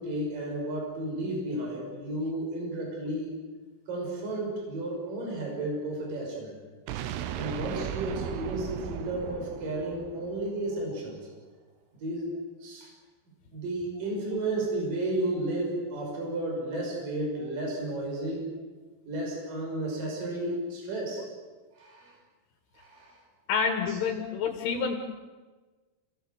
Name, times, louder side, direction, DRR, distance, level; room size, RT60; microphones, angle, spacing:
voice 1, 0.0-3.3 3.9-6.5 7.4-11.2 12.0-12.3 12.6-12.9 13.5-18.4 19.1-21.2 21.8-22.2 22.8-23.1 23.9-24.0, right 1 dB, 40° right, -1 dB, 7.3 m, -32 dB
sound 1, 6.9-10.8, right 11 dB, 85° right, 2.4 m, -37 dB
voice 2, 23.5-25.0, left 6 dB, 70° left, 3 dB, 4.1 m, -28 dB
30.0 x 18.5 x 8.0 m, 1.3 s
omnidirectional pair, 6.0 m